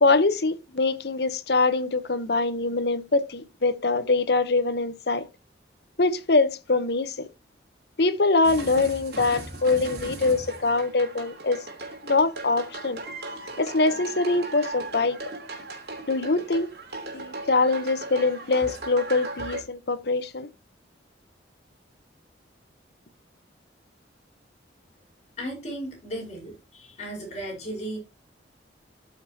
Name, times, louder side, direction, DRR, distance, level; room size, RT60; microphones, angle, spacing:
voice 1, 0.0-5.3 6.0-7.3 8.0-11.6 12.0-13.0 13.6-15.2 16.1-16.7 17.1-20.5, left 3 dB, 60° left, 0.9 m, -23 dB
sound 1, 8.4-19.6, right 2 dB, 60° right, 3.0 m, -37 dB
voice 2, 25.4-28.0, right 1 dB, 35° left, 4.6 m, -35 dB
13.0 x 6.0 x 2.8 m
head